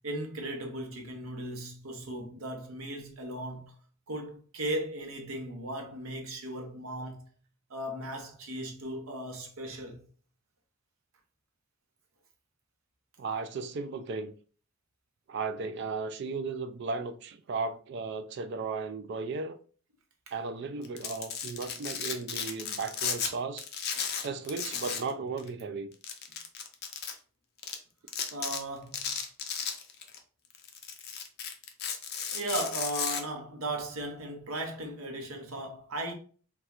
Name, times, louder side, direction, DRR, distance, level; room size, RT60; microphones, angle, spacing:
voice 1, 0.0-3.7 4.1-7.2 7.7-10.0 28.3-29.1 32.3-36.1, right 1 dB, 90° right, 0.8 m, -37 dB
voice 2, 13.2-14.3 15.3-19.6 20.3-23.6 24.2-25.9, right 4 dB, 55° right, 0.3 m, -35 dB
Domestic sounds home sounds, 20.8-23.3 23.6-25.1 25.4-25.5 26.0-27.1 27.6-27.7 28.1-28.6 28.9-30.2 30.5-33.2, left 7 dB, 50° left, 0.5 m, -34 dB
4.2 x 2.3 x 2.4 m
head